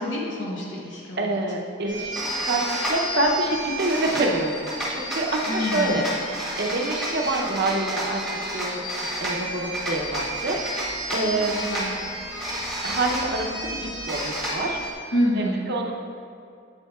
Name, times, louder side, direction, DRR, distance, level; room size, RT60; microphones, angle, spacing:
voice 1, 0.0-1.3 5.5-6.0 11.1-11.3 11.6-11.9 15.1-15.6, equal, 65° left, -4 dB, 0.9 m, -27 dB
voice 2, 1.2-4.5 4.9-11.6 12.8-14.8 15.4-15.9, right 2 dB, 50° right, 1 dB, 0.7 m, -27 dB
sound 1, 1.9-14.9, equal, ahead, 1.2 m, -30 dB
8.2 x 7.1 x 2.3 m, 2.4 s
head